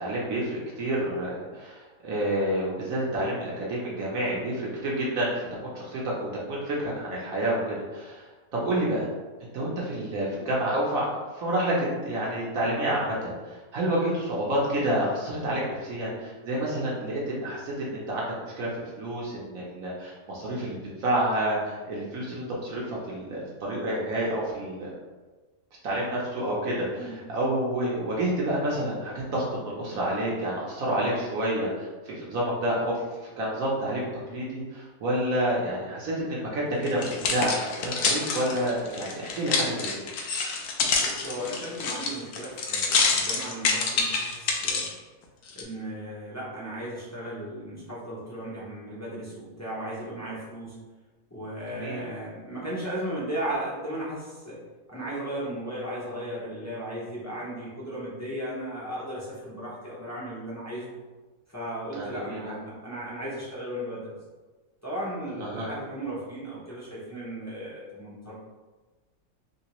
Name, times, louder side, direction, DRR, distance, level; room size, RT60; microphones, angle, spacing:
voice 1, 0.0-9.1 9.5-24.9 25.8-32.9 33.4-39.9 51.8-52.0 61.9-62.6 65.4-65.7, right 1 dB, 70° right, -5 dB, 1.2 m, -29 dB
sound 1, 36.9-44.9 45.5-45.6, left 4 dB, 85° left, 1.1 m, -27 dB
voice 2, 41.0-44.9 45.5-50.8 51.3-54.6 54.9-61.0 61.5-64.1 64.8-68.3, right 1 dB, 20° left, -8 dB, 0.5 m, -36 dB
3.4 x 2.8 x 2.9 m, 1.3 s
omnidirectional pair, 1.6 m